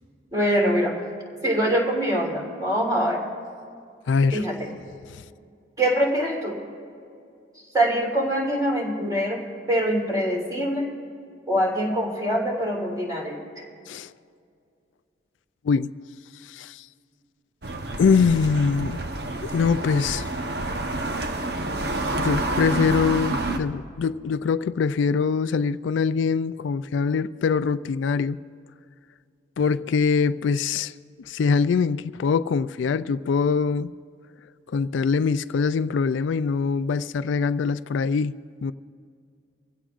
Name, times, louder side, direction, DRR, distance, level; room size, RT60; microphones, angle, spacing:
voice 1, 0.3-0.9 1.4-3.2 4.3-4.7 5.8-6.6 7.7-10.9 11.5-13.6, equal, 20° right, 3.5 m, -24 dB
voice 2, 4.1-4.4 13.9-14.1 15.6-15.9 16.5-16.8 18.0-19.0 19.4-20.3 20.7-20.8 22.2-28.4 29.6-30.9 31.3-33.9 34.7-38.4 38.6-38.7, left 5 dB, 80° left, 0.3 m, -23 dB
sound 1, 17.6-23.6, right 2 dB, 60° right, 1.0 m, -28 dB
25.5 x 16.0 x 2.5 m
head